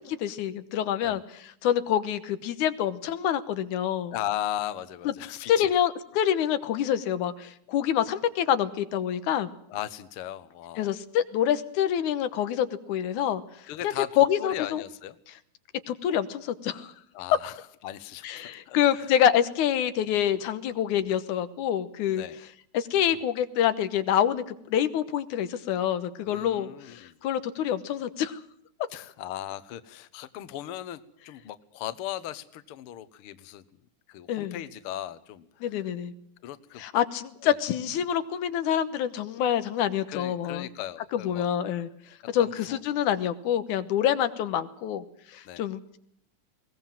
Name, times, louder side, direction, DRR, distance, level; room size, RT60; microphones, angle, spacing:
voice 1, 0.1-4.1 5.5-9.5 10.8-13.4 14.2-14.8 15.9-16.9 18.2-22.2 22.7-28.4 34.3-34.6 35.6-36.1 36.8-40.7 41.1-41.9 42.3-45.1 45.3-45.8, left 10 dB, 90° left, 11 dB, 2.6 m, -26 dB
voice 2, 4.1-5.7 9.7-11.0 13.7-14.1 14.4-15.2 17.1-17.6 17.8-18.3 18.7-19.1 22.1-22.4 26.3-27.1 28.9-33.6 34.1-35.8 36.4-36.8 37.4-37.6 40.1-41.5 42.4-42.8 45.4-45.7, left 12 dB, 60° left, 14 dB, 1.6 m, -37 dB
22.0 x 18.5 x 7.5 m, 0.69 s
omnidirectional pair, 3.4 m